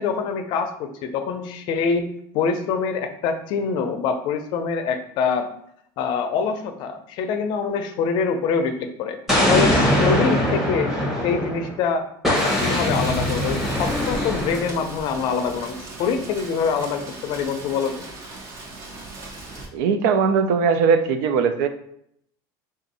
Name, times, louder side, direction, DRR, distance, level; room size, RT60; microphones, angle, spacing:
voice 1, 0.0-2.1 2.3-5.5 6.0-9.2 9.5-10.9 11.2-18.0, left 5 dB, 50° left, 7 dB, 0.5 m, -25 dB
Explosion, 9.3-11.7 12.2-14.8, equal, ahead, 1.0 m, -22 dB
Rain, 12.3-19.7, right 2 dB, 30° right, 0.8 m, -37 dB
voice 2, 19.7-21.7, right 5 dB, 80° right, 9 dB, 0.5 m, -19 dB
3.7 x 2.6 x 4.0 m, 0.71 s
cardioid pair, 160°, 10 cm